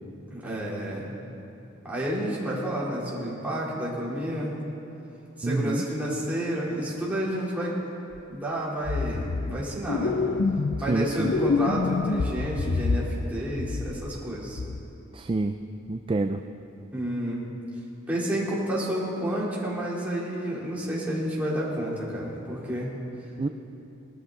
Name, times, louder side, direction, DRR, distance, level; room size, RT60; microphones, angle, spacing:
voice 1, 0.3-1.1 1.8-4.5 5.4-7.8 8.3-10.1 10.8-14.6 16.9-17.4 18.1-22.9, equal, 10° right, -7 dB, 3.2 m, -30 dB
voice 2, 5.4-5.8 10.9-11.3 15.1-15.5 15.9-16.4 23.4-23.5, right 3 dB, 25° right, 6 dB, 0.4 m, -27 dB
sound 1, 8.1-8.2 8.8-9.6 9.9-10.9 11.2-13.3 13.5-14.2 14.6-14.8, left 4 dB, 60° left, 0.5 m, -27 dB
21.0 x 13.0 x 3.8 m, 2.9 s
head